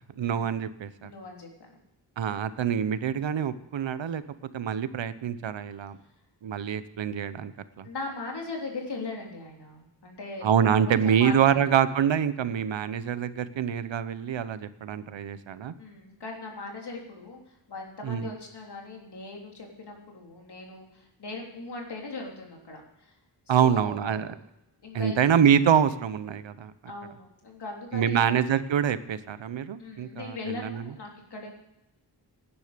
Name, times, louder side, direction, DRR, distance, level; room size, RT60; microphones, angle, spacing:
voice 1, 0.2-1.1 2.2-4.2 4.5-6.0 6.4-7.5 7.8-7.9 10.4-15.7 18.0-18.3 23.5-24.3 24.9-26.7 27.9-30.9, right 8 dB, 85° right, 14 dB, 0.9 m, -25 dB
voice 2, 1.0-1.8 7.8-10.5 10.9-11.6 15.8-23.1 23.5-24.4 24.8-25.2 26.9-28.3 29.8-31.5, left 3 dB, 60° left, 0 dB, 3.5 m, -39 dB
18.0 x 10.0 x 5.1 m, 0.88 s
wide cardioid pair, 160°, 44 cm